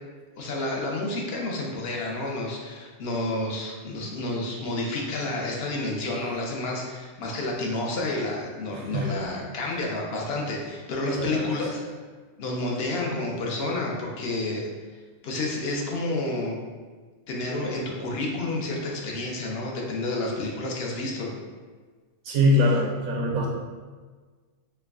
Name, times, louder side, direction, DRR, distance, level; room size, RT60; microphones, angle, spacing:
voice 1, 0.4-11.8 12.4-14.7 15.2-16.6 17.3-21.3, left 2 dB, 55° left, -1 dB, 0.8 m, -30 dB
voice 2, 22.3-23.5, left 1 dB, 80° right, -1 dB, 1.0 m, -22 dB
4.5 x 2.2 x 3.5 m, 1.4 s
omnidirectional pair, 1.5 m